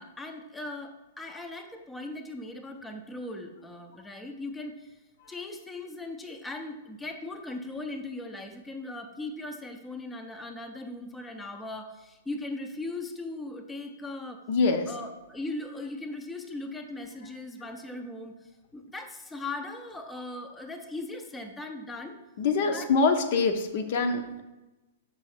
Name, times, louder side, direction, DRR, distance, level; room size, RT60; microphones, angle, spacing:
voice 1, 0.0-5.0 5.3-14.4 14.9-22.2 22.7-22.9, left 2 dB, 10° left, 4 dB, 0.6 m, -39 dB
voice 2, 14.5-14.9 22.4-24.4, left 4 dB, 50° left, 7 dB, 0.7 m, -25 dB
6.2 x 4.8 x 4.3 m, 1.1 s
figure-of-eight pair, 105°, 0 cm